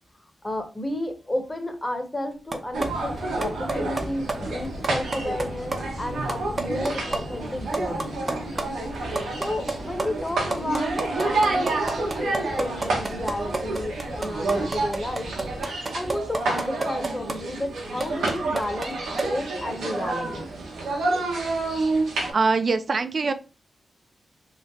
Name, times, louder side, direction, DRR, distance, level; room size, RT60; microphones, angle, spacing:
voice 1, 0.4-8.2 9.4-15.3 15.9-19.0 19.2-20.5, left 1 dB, 25° left, 5 dB, 1.0 m, -32 dB
sound 1, 2.5-2.9 3.2-4.0 4.3-4.4 4.6-5.4 5.7-5.8 6.1-7.2 7.5-7.6 7.7-8.6 8.9-17.3 17.8-18.9 19.2-19.3, right 3 dB, 40° right, 0.7 m, -28 dB
sound 2, 2.7-15.6, left 1 dB, 60° left, 0.7 m, -40 dB
sound 3, 2.7-22.3, right 3 dB, 90° right, 0.9 m, -29 dB
voice 2, 22.3-23.3, right 4 dB, 55° right, 10 dB, 0.4 m, -23 dB
3.2 x 2.1 x 3.5 m, 0.33 s
cardioid pair, 50°, 0 cm